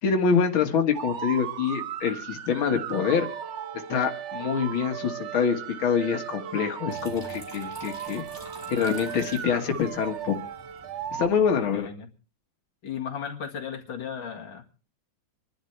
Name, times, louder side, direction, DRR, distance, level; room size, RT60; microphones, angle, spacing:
voice 1, 0.0-3.3 3.9-8.2 8.7-10.4 11.1-11.9, left 6 dB, 90° left, 3 dB, 2.4 m, -25 dB
sound 1, 0.9-11.3, right 9 dB, 55° right, 0.8 m, -36 dB
Water tap faucet / Trickle dribble, 6.9-11.9, right 1 dB, 30° right, 4.8 m, -47 dB
voice 2, 11.7-12.1 12.8-14.6, left 7 dB, 70° left, 1 dB, 2.7 m, -35 dB
27.0 x 11.5 x 3.3 m, 0.37 s
omnidirectional pair, 2.2 m